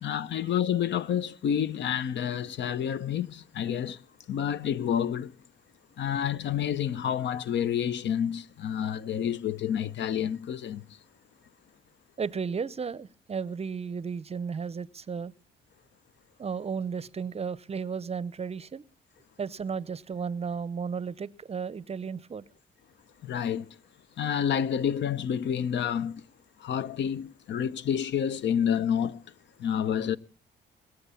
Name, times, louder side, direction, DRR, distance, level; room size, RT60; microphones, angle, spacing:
voice 1, 0.0-4.0 4.3-5.3 6.0-10.8 23.2-23.7 24.2-26.2 26.6-29.2 29.6-30.2, left 9 dB, 65° left, 0.8 m, -29 dB
voice 2, 12.2-15.3 16.4-18.8 19.4-22.4, right 6 dB, 30° right, 0.6 m, -34 dB
21.0 x 7.9 x 7.0 m
cardioid pair, 90°, 20 cm